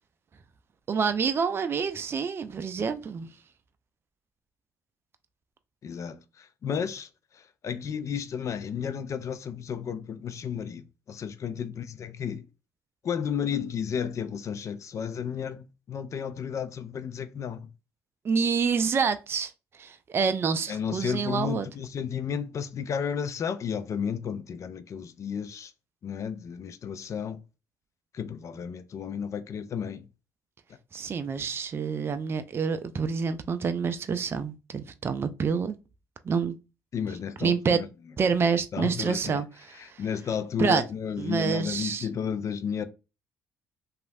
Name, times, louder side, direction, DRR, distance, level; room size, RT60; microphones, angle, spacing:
voice 1, 0.9-3.3 18.2-21.7 30.9-35.8 36.2-36.6 37.4-37.8 38.2-40.0 40.6-40.9 41.2-42.1, right 5 dB, 35° right, 0.4 m, -27 dB
voice 2, 5.8-7.1 7.3-12.5 13.0-17.7 20.7-25.7 26.0-27.4 28.1-30.1 36.9-37.9 38.7-39.4 39.8-42.8, left 7 dB, 45° left, 0.4 m, -33 dB
2.9 x 2.3 x 2.6 m
hypercardioid pair, 60°, 7 cm